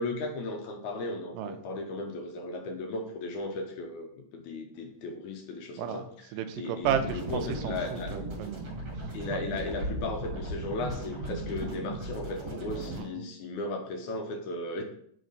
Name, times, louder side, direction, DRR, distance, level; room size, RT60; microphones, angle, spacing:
voice 1, 0.0-6.1 6.6-8.1 9.1-14.8, left 2 dB, 75° left, 3 dB, 2.0 m, -36 dB
voice 2, 6.3-9.4 12.9-13.3, right 8 dB, 85° right, 8 dB, 2.2 m, -34 dB
sound 1, 6.8-13.0, right 2 dB, 50° right, 2.8 m, -37 dB
5.5 x 3.9 x 5.0 m, 0.66 s
omnidirectional pair, 3.8 m